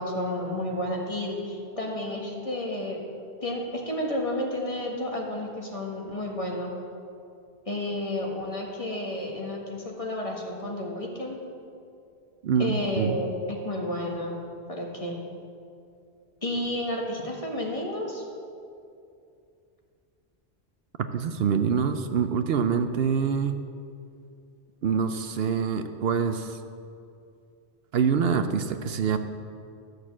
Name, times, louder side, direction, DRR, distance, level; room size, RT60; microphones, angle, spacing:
voice 1, 0.0-3.0 3.4-6.7 7.7-11.4 12.6-14.4 14.7-15.2 16.4-18.2, left 1 dB, 30° left, -1 dB, 1.8 m, -31 dB
voice 2, 12.4-13.2 21.1-23.6 24.8-26.6 27.9-29.2, right 6 dB, 70° right, 8 dB, 0.8 m, -25 dB
13.0 x 6.6 x 7.4 m, 2.5 s
omnidirectional pair, 1.1 m